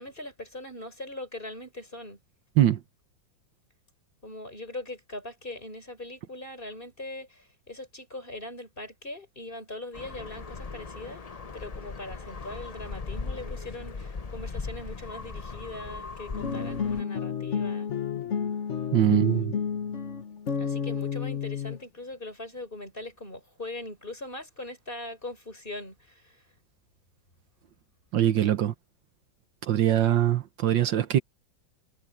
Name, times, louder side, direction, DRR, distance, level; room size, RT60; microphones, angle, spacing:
voice 1, 0.0-2.2 4.2-11.2 11.5-17.9 19.1-19.5 20.6-26.4, left 2 dB, 25° left, 5.0 m, -41 dB
sound 1, 9.9-17.0, left 4 dB, 75° left, 0.3 m, -38 dB
sound 2, 16.3-21.8, left 7 dB, 45° left, 1.3 m, -31 dB
voice 2, 18.9-19.5 28.1-28.7 29.6-31.2, right 11 dB, 70° right, 1.6 m, -22 dB
omnidirectional pair, 2.1 m